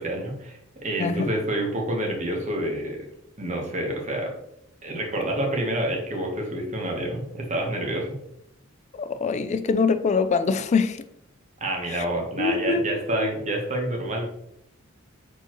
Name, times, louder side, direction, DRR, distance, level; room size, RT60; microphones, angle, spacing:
voice 1, 0.0-3.0 3.4-4.3 4.8-8.2 11.6-14.2, right 1 dB, 35° right, 1.1 m, -28 dB
voice 2, 8.9-11.0 11.9-12.0 12.4-12.8 13.2-13.3, left 4 dB, 35° left, 0.3 m, -24 dB
4.5 x 4.0 x 3.0 m
head